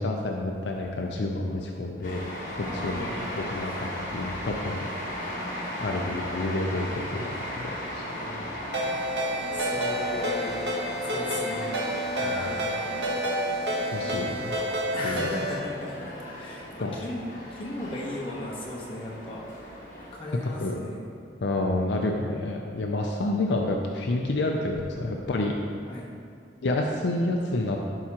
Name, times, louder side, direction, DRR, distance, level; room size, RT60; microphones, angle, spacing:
voice 1, 0.0-2.2 2.6-3.1 3.4-4.8 5.2-5.4 5.8-8.0 12.2-12.5 13.9-14.7 15.0-15.3 16.8-16.9 20.6-20.8 21.4-25.5 26.6-27.8, left 2 dB, 70° left, 1 dB, 0.5 m, -29 dB
sound 1, 2.0-20.1, left 1 dB, 45° left, 1.6 m, -37 dB
voice 2, 2.6-3.3 8.1-8.8 9.5-10.5 11.0-11.8 12.1-13.9 14.9-17.2 17.5-19.8 20.1-21.2 21.6-21.7 25.9-26.1, left 1 dB, 30° left, -5 dB, 1.3 m, -37 dB
sound 2, 6.6-7.8 8.1-16.7, right 2 dB, 45° right, 1.4 m, -45 dB
Ringtone, 8.7-15.6, equal, 75° right, 1.2 m, -29 dB
11.5 x 4.8 x 3.0 m, 2.3 s
head